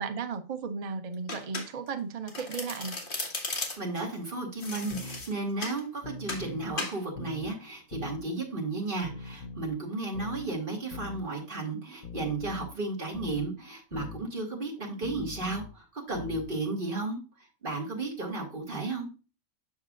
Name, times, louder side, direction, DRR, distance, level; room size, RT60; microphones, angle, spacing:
voice 1, 0.0-3.0, right 5 dB, 65° right, 0.3 m, -35 dB
Domestic sounds home sounds, 1.3-2.0 2.3-4.0 4.6-5.8 6.3-6.5 6.8-7.0, left 3 dB, 40° left, 1.5 m, -36 dB
voice 2, 3.8-19.1, right 3 dB, 40° right, 2.1 m, -34 dB
sound 1, 4.9-5.2 6.0-6.7 7.2-7.5 7.9-8.2 9.0-9.7 10.1-10.5 10.9-11.2 12.0-12.7 13.1-13.5 13.9-14.2 15.0-15.7 16.1-16.5, left 4 dB, 80° left, 1.3 m, -41 dB
7.2 x 6.4 x 2.4 m
omnidirectional pair, 1.4 m